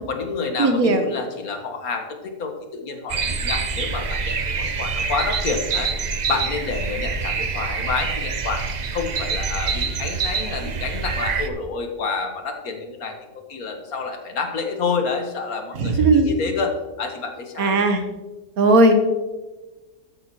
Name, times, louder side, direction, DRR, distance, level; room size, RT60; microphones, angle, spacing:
voice 1, 0.1-8.7 8.9-13.2 13.5-17.8, left 4 dB, 75° left, 4 dB, 1.7 m, -28 dB
voice 2, 0.6-1.0 15.8-16.3 17.6-18.0 18.6-18.9, right 2 dB, 75° right, 6 dB, 1.5 m, -16 dB
sound 1, 3.1-11.5, right 5 dB, 55° right, 0.5 m, -26 dB
14.0 x 8.5 x 3.0 m, 1.2 s
omnidirectional pair, 1.6 m